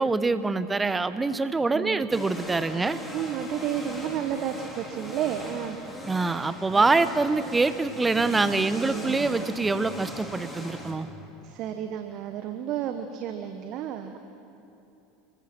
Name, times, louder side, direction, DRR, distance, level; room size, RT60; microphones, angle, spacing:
voice 1, 0.0-3.0 6.1-11.1, right 3 dB, 15° right, 13 dB, 1.1 m, -25 dB
sound 1, 2.1-10.9, equal, 10° left, 4.7 m, -39 dB
voice 2, 3.1-5.8 8.6-9.5 11.4-14.2, right 10 dB, 45° right, 8 dB, 1.2 m, -32 dB
29.0 x 22.0 x 6.2 m, 2.9 s
figure-of-eight pair, 75°, 0 cm